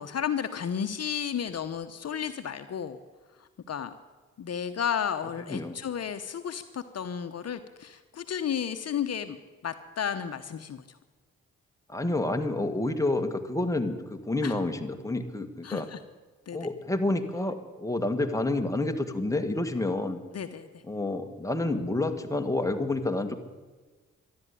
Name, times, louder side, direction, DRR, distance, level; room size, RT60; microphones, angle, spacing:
voice 1, 0.0-3.0 3.4-3.9 4.4-9.4 9.6-10.8 14.4-14.5 15.6-16.0 16.5-16.6 20.3-20.8, left 8 dB, 55° left, 9 dB, 1.0 m, -33 dB
voice 2, 5.5-5.8 11.9-15.9 16.5-20.2 20.8-23.4, left 2 dB, 10° left, 5 dB, 1.8 m, -29 dB
13.0 x 11.5 x 9.8 m, 1.3 s
cardioid pair, 60°, 30 cm